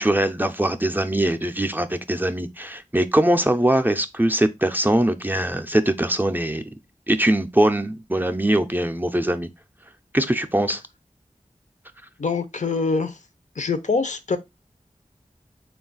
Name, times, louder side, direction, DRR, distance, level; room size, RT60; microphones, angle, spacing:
voice 1, 0.0-6.6 7.1-9.5 10.1-10.8, right 1 dB, 15° right, 0.4 m, -22 dB
voice 2, 12.2-13.2 13.6-14.4, left 4 dB, 65° left, 0.5 m, -24 dB
3.9 x 2.3 x 3.7 m
wide cardioid pair, 60°, 13 cm